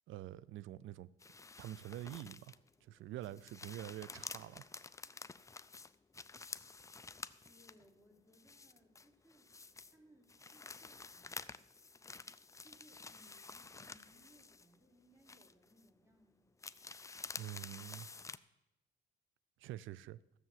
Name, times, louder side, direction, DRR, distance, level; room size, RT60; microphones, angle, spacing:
voice 1, 0.1-1.1 1.6-4.6 17.4-18.1 19.6-20.2, right 13 dB, 80° right, 0.5 m, -46 dB
sound 1, 1.2-2.7 3.2-7.9 8.3-10.0 10.3-14.9 15.3-15.9 16.6-18.4, left 4 dB, 15° left, 0.4 m, -50 dB
voice 2, 7.5-9.5 9.8-11.3 12.6-16.5, equal, 10° right, 3.8 m, -67 dB
14.5 x 7.0 x 7.5 m
cardioid pair, 90°, 20 cm